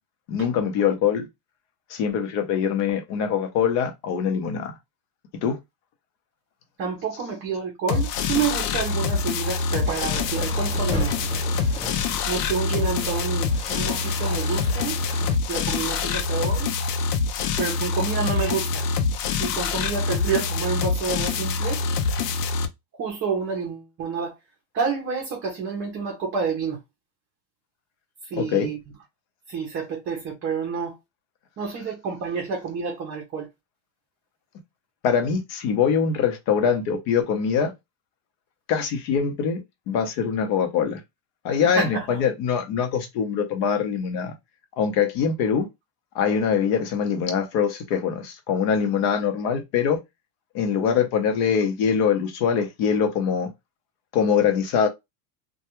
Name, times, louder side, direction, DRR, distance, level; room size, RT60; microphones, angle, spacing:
voice 1, 0.3-1.3 1.9-4.7 5.4-5.6 28.3-28.7 35.0-37.7 38.7-39.6 39.9-41.0 41.4-44.3 44.8-45.7 46.1-50.0 50.5-53.5 54.1-54.9, left 7 dB, 50° left, 0.8 m, -23 dB
voice 2, 6.8-11.4 12.3-15.0 15.5-16.7 17.6-18.8 19.3-21.8 22.9-24.3 24.7-26.8 28.2-28.8 29.5-30.9 31.6-33.5 41.7-42.2, right 5 dB, 30° right, 0.6 m, -29 dB
sound 1, 7.9-22.7, left 4 dB, 85° left, 0.7 m, -25 dB
sound 2, 9.9-15.4, left 1 dB, 15° left, 0.6 m, -37 dB
2.3 x 2.3 x 2.9 m
supercardioid pair, 140°, 47 cm